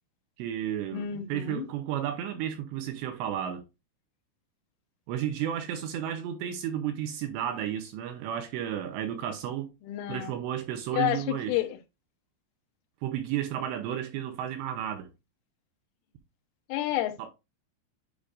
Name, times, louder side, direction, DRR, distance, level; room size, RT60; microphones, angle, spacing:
voice 1, 0.4-3.6 5.1-9.7 10.1-11.5 13.0-15.1 17.2-17.3, right 10 dB, 80° right, 2.7 m, -32 dB
voice 2, 0.9-1.7 9.8-10.3 10.9-11.8 16.7-17.3, left 13 dB, 90° left, 3.4 m, -30 dB
10.5 x 4.8 x 2.5 m
omnidirectional pair, 5.5 m